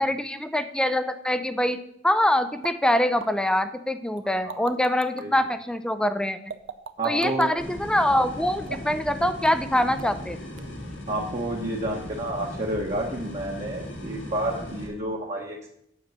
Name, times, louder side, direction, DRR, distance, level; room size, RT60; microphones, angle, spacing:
voice 1, 0.0-1.8 2.0-6.4 7.0-10.4, left 1 dB, 5° left, 10 dB, 0.4 m, -24 dB
sound 1, 2.6-2.7 3.2-3.3 4.2-5.2 6.5-7.5 8.7-9.0 9.4-9.7 10.0-10.3 10.6-10.7, right 5 dB, 75° right, 0.6 m, -37 dB
voice 2, 7.0-7.5 11.1-15.7, right 1 dB, 40° right, -2 dB, 1.0 m, -30 dB
sound 2, 7.6-14.9, left 1 dB, 85° left, 2.3 m, -37 dB
7.9 x 5.4 x 6.7 m, 0.74 s
head